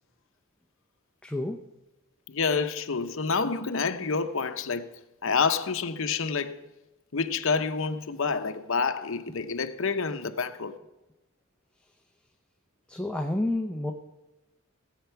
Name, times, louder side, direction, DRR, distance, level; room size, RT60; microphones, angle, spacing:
voice 1, 1.2-1.6 12.9-13.9, left 1 dB, 5° left, 0.6 m, -29 dB
voice 2, 2.3-4.9 5.2-6.6 7.1-10.7, left 5 dB, 70° left, 0.8 m, -28 dB
17.5 x 8.2 x 5.8 m
head